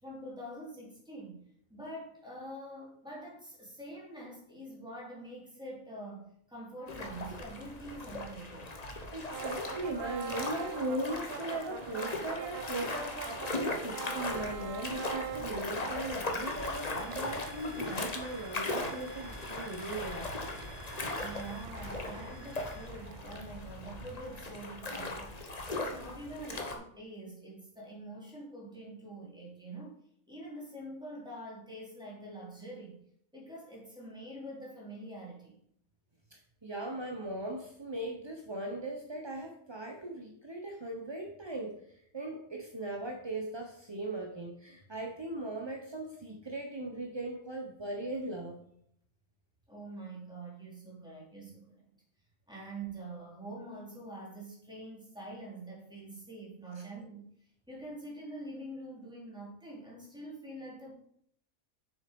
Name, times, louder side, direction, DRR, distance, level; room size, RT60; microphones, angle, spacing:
voice 1, 0.0-1.4 1.7-8.7 21.2-25.4 25.7-33.0 33.3-35.6 49.7-51.8 52.5-57.3 57.7-60.9, right 1 dB, 5° right, -4 dB, 2.8 m, -45 dB
sound 1, 6.9-26.8, left 2 dB, 30° left, 1.0 m, -39 dB
voice 2, 9.1-20.3 36.3-48.6 56.7-56.8, right 1 dB, 25° right, 1 dB, 0.6 m, -39 dB
sound 2, 9.3-23.5, right 9 dB, 90° right, 0.5 m, -45 dB
sound 3, 16.3-23.8 24.2-24.3, left 10 dB, 60° left, 0.9 m, -55 dB
7.2 x 6.4 x 5.1 m, 0.69 s
omnidirectional pair, 1.7 m